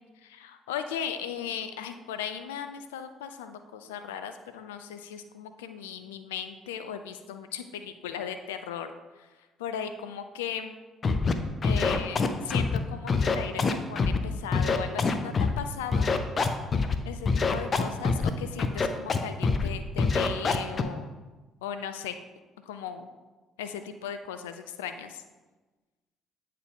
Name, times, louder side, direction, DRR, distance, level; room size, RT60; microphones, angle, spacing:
voice 1, 0.2-8.9 9.2-9.3 9.6-10.8 11.6-16.1 17.0-21.1 21.6-22.2 22.7-23.1 23.6-25.2, left 8 dB, 85° left, 9 dB, 0.3 m, -37 dB
Scratching (performance technique), 11.0-11.3 11.6-12.8 13.1-14.2 14.5-15.6 15.9-17.0 17.3-18.3 18.6-19.2 19.4-19.7 20.0-20.8, left 4 dB, 40° left, 0.6 m, -24 dB
8.3 x 4.6 x 3.7 m, 1.2 s
hypercardioid pair, 50°, 0 cm